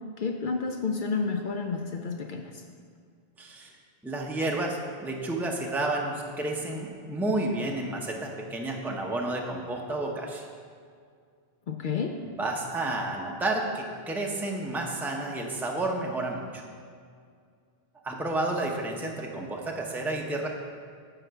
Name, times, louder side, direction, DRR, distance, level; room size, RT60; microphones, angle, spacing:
voice 1, 0.2-2.6 11.7-12.2, left 5 dB, 60° left, 4 dB, 0.7 m, -30 dB
voice 2, 3.4-3.7 4.0-10.4 12.4-16.6 18.0-20.5, right 2 dB, ahead, 0 dB, 0.7 m, -31 dB
9.8 x 3.9 x 6.8 m, 2.2 s
omnidirectional pair, 1.0 m